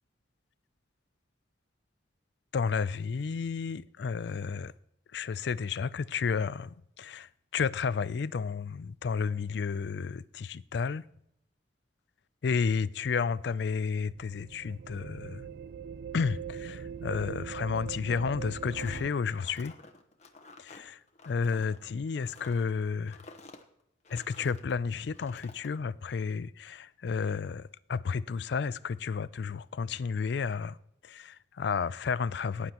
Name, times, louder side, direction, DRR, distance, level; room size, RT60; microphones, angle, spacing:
voice 1, 2.5-4.7 5.1-11.0 12.4-15.5 16.1-19.7 20.6-21.0 21.3-23.2 24.1-30.8 31.0-32.7, left 5 dB, 65° left, 0.4 m, -32 dB
sound 1, 14.0-19.1, right 7 dB, 55° right, 0.3 m, -41 dB
sound 2, 18.6-24.7 25.1-25.7, left 3 dB, 40° left, 1.0 m, -51 dB
17.5 x 9.8 x 3.0 m
head